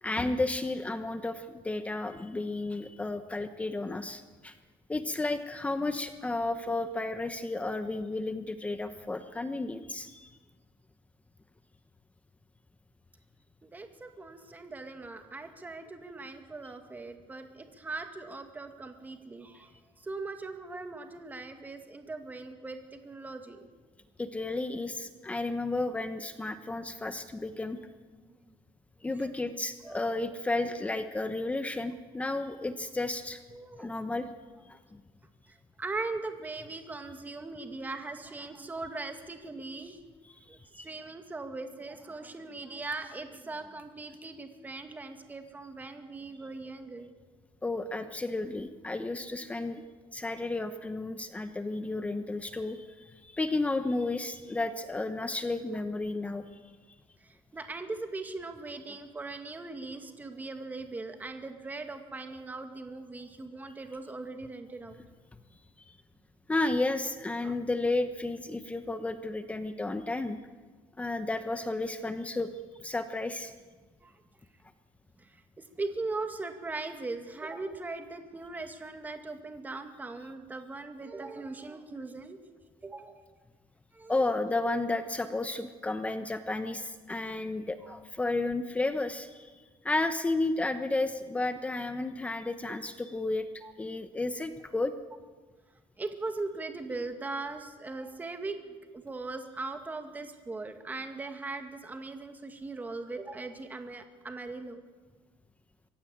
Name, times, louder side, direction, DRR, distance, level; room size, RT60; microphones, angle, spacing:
voice 1, 0.0-4.6 4.9-10.3 24.2-27.8 29.0-33.4 33.8-34.3 34.6-35.0 40.2-40.3 40.8-40.9 47.6-49.8 50.1-56.4 66.5-70.4 71.0-72.5 72.8-73.5 84.1-89.5 89.8-94.9, left 2 dB, 10° left, 9 dB, 1.0 m, -32 dB
voice 2, 13.6-19.7 20.0-23.7 28.3-28.4 29.2-29.3 29.8-30.1 33.5-33.9 35.5-40.0 40.5-47.1 57.2-65.0 67.4-67.5 74.0-74.1 75.2-75.3 75.6-82.4 82.8-83.2 83.9-84.2 87.8-88.0 93.6-93.7 96.0-104.8, right 3 dB, 15° right, 6 dB, 2.2 m, -40 dB
23.0 x 16.5 x 8.8 m, 1.4 s
cardioid pair, 125°, 11 cm